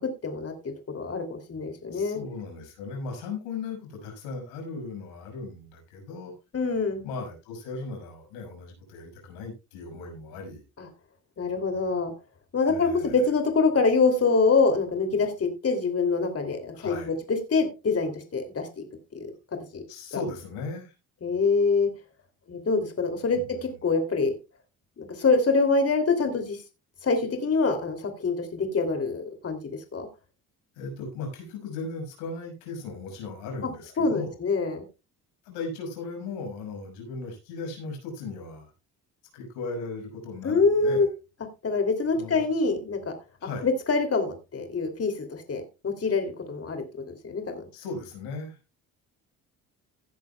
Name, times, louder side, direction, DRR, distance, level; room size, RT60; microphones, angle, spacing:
voice 1, 0.0-2.2 6.5-7.0 10.8-10.9 11.4-12.1 12.5-18.8 19.1-19.8 21.2-21.9 22.5-24.3 25.0-26.6 27.0-29.6 29.9-30.1 34.0-34.8 40.4-41.1 41.6-43.1 43.6-47.6, left 4 dB, 40° left, 5 dB, 3.0 m, -25 dB
voice 2, 1.9-6.3 7.0-10.6 12.6-13.2 16.7-17.1 19.9-20.9 23.3-23.5 30.7-34.4 35.4-38.7 39.3-41.1 42.1-42.5 43.4-43.7 47.7-48.6, left 3 dB, 90° left, 3 dB, 5.8 m, -37 dB
17.0 x 10.5 x 2.3 m, 0.28 s
supercardioid pair, 70°, 38 cm